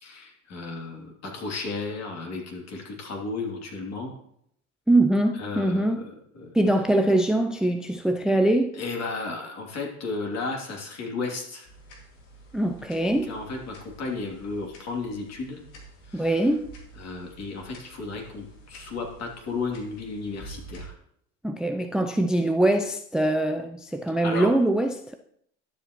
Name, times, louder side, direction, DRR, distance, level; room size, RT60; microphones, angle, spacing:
voice 1, 0.0-4.1 5.4-6.0 6.3-6.5 8.7-11.7 13.2-15.6 16.1-16.4 17.0-20.9 24.2-24.5, left 3 dB, 45° left, 3.0 m, -34 dB
voice 2, 4.9-6.0 6.5-8.8 12.5-13.4 16.1-16.7 21.4-25.2, right 1 dB, ahead, 0.5 m, -23 dB
sound 1, 11.6-20.9, right 2 dB, 70° left, 2.5 m, -48 dB
11.5 x 7.8 x 3.1 m
hypercardioid pair, 75°, 36 cm